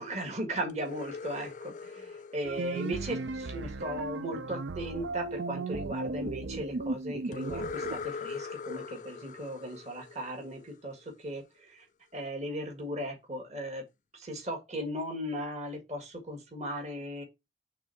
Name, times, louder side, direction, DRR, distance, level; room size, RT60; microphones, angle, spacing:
voice 1, 0.0-11.8 12.1-13.8 14.1-17.2, equal, 40° right, 1.7 m, -37 dB
sound 1, 0.7-3.7 7.3-11.0, left 4 dB, 45° left, 0.4 m, -41 dB
sound 2, 2.4-8.1, right 3 dB, 80° right, 0.5 m, -36 dB
6.1 x 3.4 x 5.7 m
head